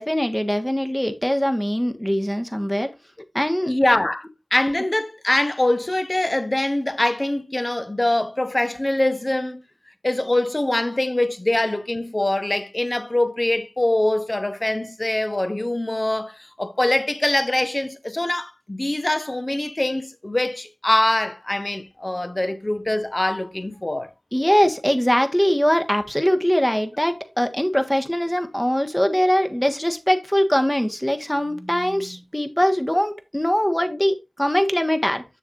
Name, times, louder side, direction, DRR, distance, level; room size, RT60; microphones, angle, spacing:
voice 1, 0.0-2.9 3.3-3.7 24.3-35.2, equal, 10° left, 1.5 m, -22 dB
voice 2, 3.7-9.6 10.0-24.1, left 1 dB, 35° left, 1.0 m, -23 dB
8.6 x 6.9 x 2.6 m
wide cardioid pair, 40°, 0 cm